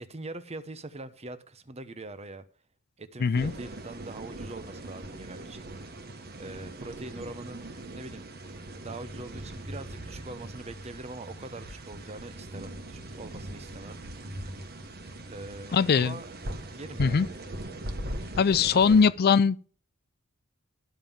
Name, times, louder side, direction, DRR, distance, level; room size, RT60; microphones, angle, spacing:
voice 1, 0.0-2.5 3.0-5.7 6.3-7.6 7.9-8.2 8.7-14.0 15.3-16.3 16.7-17.2 18.6-19.1, right 2 dB, 30° right, 0.9 m, -42 dB
voice 2, 3.2-3.5 15.7-16.1 17.0-17.3 18.4-19.7, left 6 dB, 45° left, 0.4 m, -21 dB
sound 1, 3.4-19.1, right 1 dB, 45° right, 1.4 m, -40 dB
12.5 x 5.5 x 7.2 m
head